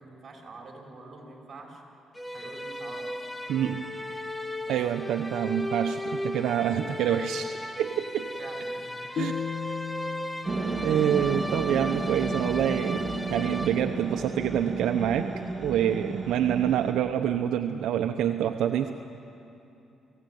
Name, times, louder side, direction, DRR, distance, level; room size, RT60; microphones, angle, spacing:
voice 1, 0.0-1.8 2.3-3.2 3.6-3.8 4.6-4.8 8.4-9.0, right 3 dB, 40° right, 0 dB, 6.0 m, -46 dB
sound 1, 2.1-14.2, left 1 dB, 5° left, 0.9 m, -36 dB
voice 2, 3.5-3.9 4.7-8.3 9.1-9.3 10.8-15.3 15.6-18.9, right 10 dB, 80° right, 5 dB, 0.9 m, -27 dB
sound 2, 9.2-12.3, left 8 dB, 55° left, 0.6 m, -37 dB
sound 3, 10.4-16.9, right 3 dB, 20° right, 3.6 m, -32 dB
28.5 x 17.0 x 9.4 m, 2.8 s
cardioid pair, 90°, 0 cm